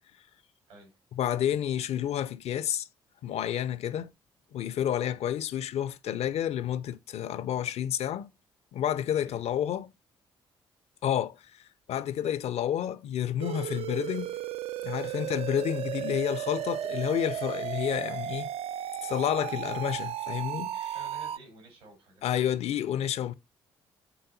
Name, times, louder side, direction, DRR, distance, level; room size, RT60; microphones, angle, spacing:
voice 1, 1.2-2.9 3.2-4.1 4.5-8.3 8.7-9.9 11.0-11.6 11.9-14.3 14.8-18.5 19.0-20.9 22.2-23.3, left 10 dB, 55° left, 0.5 m, -30 dB
sound 1, 13.4-21.4, right 11 dB, 50° right, 0.4 m, -35 dB
voice 2, 20.9-22.2 22.7-23.1, right 2 dB, 80° right, 3.2 m, -52 dB
10.0 x 3.9 x 2.7 m
figure-of-eight pair, 40°, 13 cm